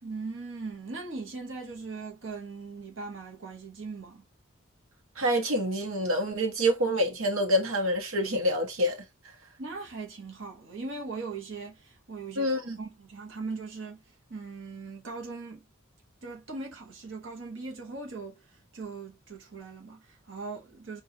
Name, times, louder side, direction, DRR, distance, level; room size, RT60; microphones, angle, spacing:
voice 1, 0.0-4.2 9.6-15.7 16.2-21.0, right 3 dB, 65° right, 1.2 m, -40 dB
voice 2, 5.2-9.0 12.4-12.8, equal, 90° right, 1.2 m, -26 dB
4.1 x 2.6 x 2.8 m
head